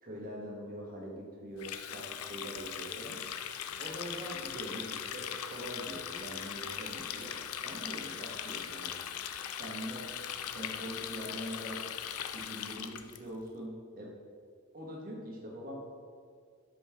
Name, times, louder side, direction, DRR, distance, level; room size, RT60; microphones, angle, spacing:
voice 1, 0.0-3.2 3.8-7.3 7.6-8.9 9.6-10.1 10.5-11.8 12.2-14.1 14.7-15.8, equal, 40° right, -3 dB, 1.4 m, -43 dB
Water tap faucet, 1.6-13.2, left 9 dB, 85° left, 0.4 m, -40 dB
5.5 x 5.1 x 5.7 m, 2.1 s
head